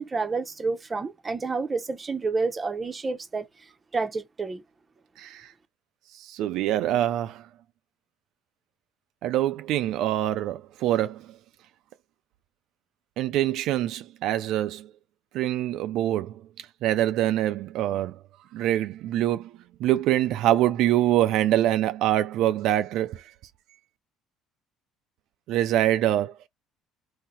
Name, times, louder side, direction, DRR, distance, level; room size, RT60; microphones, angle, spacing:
voice 1, 0.0-3.5 3.9-4.6, right 4 dB, 20° right, 0.9 m, -29 dB
voice 2, 5.2-5.5 6.1-7.5 9.2-11.3 13.2-14.9 15.3-18.2 18.5-19.5 19.8-23.3 25.5-26.4, right 13 dB, 65° right, 0.4 m, -25 dB
3.8 x 2.7 x 4.3 m
cardioid pair, 125°, 0 cm